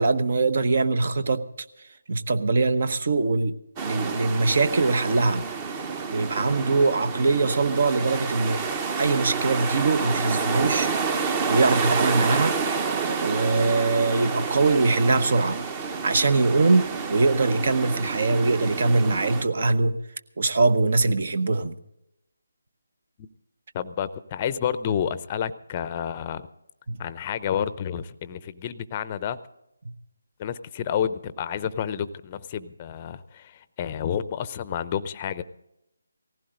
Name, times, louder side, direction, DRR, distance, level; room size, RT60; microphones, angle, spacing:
voice 1, 0.0-1.4 2.1-3.5 3.8-5.5 6.1-8.6 9.0-12.6 13.2-15.7 16.0-20.0 20.4-21.8 26.9-27.0 29.8-29.9, right 3 dB, 50° right, 13 dB, 1.0 m, -22 dB
sound 1, 3.8-19.4, right 5 dB, 20° right, 0.9 m, -29 dB
voice 2, 23.7-26.5 27.0-29.4 30.4-35.4, left 8 dB, 25° left, 14 dB, 0.7 m, -30 dB
18.5 x 15.5 x 3.8 m, 0.88 s
figure-of-eight pair, 155°, 0 cm